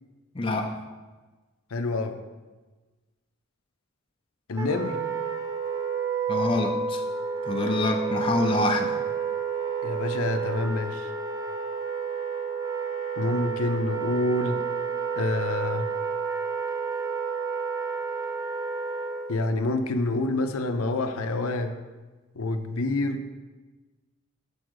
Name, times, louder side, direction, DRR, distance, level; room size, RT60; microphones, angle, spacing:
voice 1, 0.3-0.8 6.3-7.0 7.5-9.0, left 2 dB, 25° left, 3 dB, 0.5 m, -26 dB
voice 2, 1.7-2.2 4.5-5.0 9.8-11.1 13.2-14.6 15.2-15.9 19.3-21.7 22.4-23.2, left 2 dB, 80° left, 7 dB, 0.6 m, -27 dB
Wind instrument woodwind instrument, 4.6-19.4, right 5 dB, 15° right, 0.6 m, -30 dB
6.9 x 5.0 x 6.3 m, 1.3 s
head